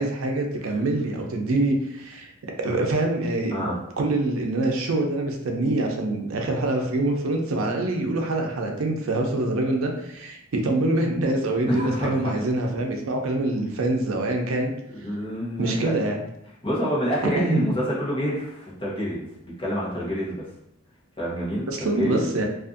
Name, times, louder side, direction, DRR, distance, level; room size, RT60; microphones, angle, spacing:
voice 1, 0.0-2.3 2.6-3.7 4.0-14.7 15.6-16.2 17.4-17.7 21.7-22.4, right 2 dB, 90° right, 2 dB, 0.5 m, -25 dB
voice 2, 11.7-12.3 14.9-15.9 16.6-20.4 21.2-22.2, equal, 25° left, -6 dB, 0.8 m, -27 dB
2.5 x 2.4 x 2.4 m, 0.79 s
head